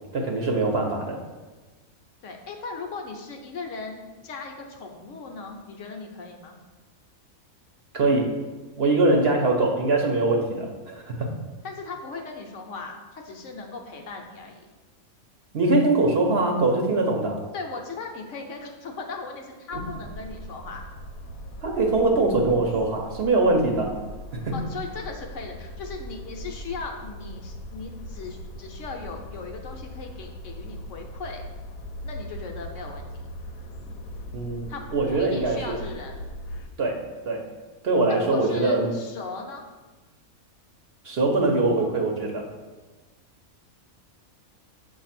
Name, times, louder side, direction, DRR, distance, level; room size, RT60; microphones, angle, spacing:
voice 1, 0.1-1.2 7.9-8.3 8.8-11.3 15.5-17.4 21.6-23.9 24.3-24.6 34.3-35.8 36.8-37.0 37.2-37.4 37.8-38.9 41.0-42.4, right 2 dB, 55° right, 1 dB, 0.8 m, -22 dB
voice 2, 2.2-6.6 11.6-14.7 17.5-20.8 24.5-31.4 32.0-33.1 34.7-36.2 38.1-39.6, left 4 dB, 65° left, 2 dB, 1.0 m, -38 dB
sound 1, 19.7-36.7, equal, 90° left, 1.1 m, -39 dB
7.1 x 2.6 x 5.8 m, 1.2 s
omnidirectional pair, 1.5 m